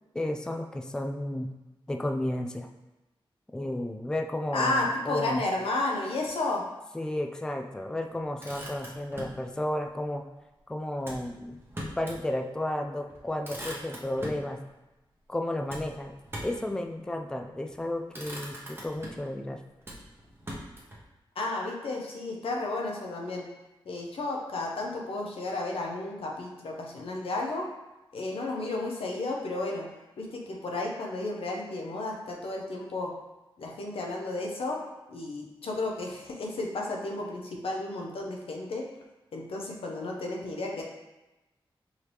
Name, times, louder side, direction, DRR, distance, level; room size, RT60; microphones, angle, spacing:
voice 1, 0.1-1.5 1.9-2.7 3.5-5.4 6.9-10.2 10.7-11.6 12.0-14.6 15.3-16.1 16.4-19.6, left 1 dB, 10° left, 4 dB, 0.3 m, -32 dB
voice 2, 4.5-6.7 21.4-23.5 23.9-27.7 28.1-29.9 30.2-33.1 33.6-34.8 35.1-38.8 39.3-40.8, left 2 dB, 85° left, 0 dB, 0.7 m, -32 dB
Motor vehicle (road), 8.2-9.4 11.0-12.2 12.6-12.7 13.1-14.5 15.7-16.7 17.5-17.8 18.1-19.3 19.8-21.0, equal, 25° right, 1.0 m, -41 dB
4.8 x 2.9 x 3.4 m, 1.0 s
wide cardioid pair, 80°, 9 cm